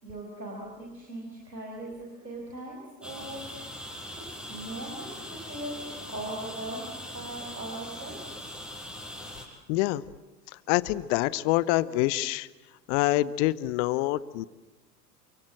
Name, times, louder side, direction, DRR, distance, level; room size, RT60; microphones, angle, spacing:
voice 1, 0.0-3.4 4.3-6.9 7.1-8.3, right 1 dB, 90° right, -2 dB, 5.2 m, -39 dB
sound 1, 3.0-9.5, left 1 dB, ahead, 6.5 m, -41 dB
voice 2, 9.7-10.0 10.7-12.5 12.9-14.5, left 17 dB, 45° left, 19 dB, 1.0 m, -26 dB
28.0 x 25.0 x 7.7 m, 1.1 s
figure-of-eight pair, 85°, 49 cm